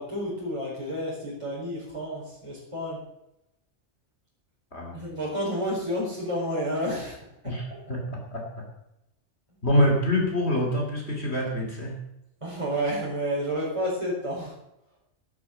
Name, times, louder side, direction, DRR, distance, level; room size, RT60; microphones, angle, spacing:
voice 1, 0.0-3.0 4.9-7.2 12.4-14.5, equal, 25° right, -5 dB, 4.7 m, -30 dB
voice 2, 4.7-5.0 7.4-7.6 7.9-8.0 8.3-8.4 9.6-11.9, left 1 dB, 60° left, 0 dB, 3.4 m, -25 dB
11.0 x 9.7 x 7.7 m, 0.85 s
omnidirectional pair, 1.2 m